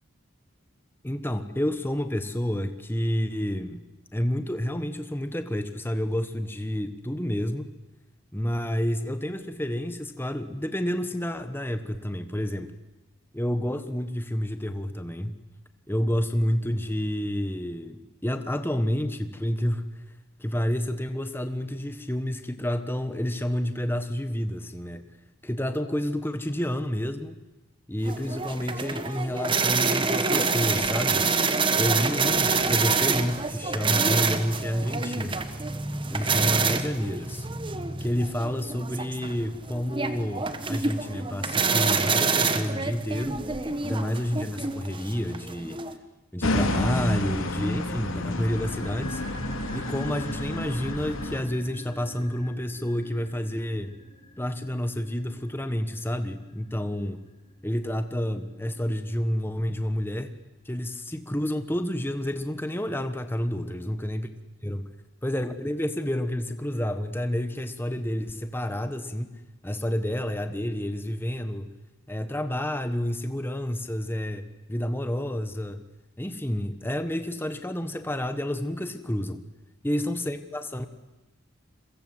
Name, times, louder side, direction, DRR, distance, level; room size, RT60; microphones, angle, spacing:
voice 1, 1.0-3.8 4.1-7.7 8.3-12.7 13.3-15.3 15.9-20.0 20.4-25.0 25.4-27.4 27.9-31.3 31.7-35.4 36.1-37.5 38.0-43.4 43.8-45.8 46.3-49.2 49.7-54.0 54.4-57.2 57.6-60.3 60.6-64.3 64.6-64.8 65.2-69.3 69.6-71.7 72.1-75.8 76.2-79.4 79.8-80.9, equal, 10° left, 9 dB, 1.3 m, -29 dB
sound 1, 28.0-45.9, right 4 dB, 25° right, 1.4 m, -27 dB
sound 2, 46.4-51.4, left 1 dB, 75° left, 3.2 m, -30 dB
sound 3, 48.0-58.2 58.5-58.6, left 1 dB, 30° left, 3.0 m, -46 dB
29.5 x 23.5 x 7.9 m, 1.0 s
head